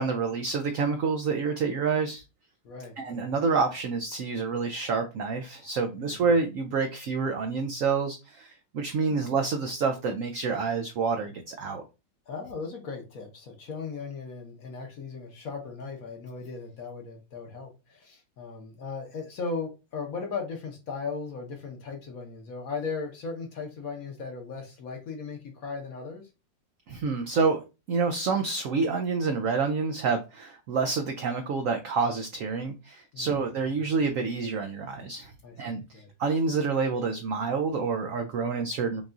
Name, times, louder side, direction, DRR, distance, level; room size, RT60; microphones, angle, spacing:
voice 1, 0.0-2.2 3.0-11.8 26.9-35.3 35.6-35.8 36.2-39.0, right 4 dB, 85° right, 0.7 m, -28 dB
voice 2, 2.6-3.2 6.0-6.2 9.1-9.2 12.3-26.2 33.1-33.4 35.4-36.1, left 4 dB, 55° left, 1.2 m, -37 dB
5.6 x 2.4 x 2.5 m
omnidirectional pair, 2.0 m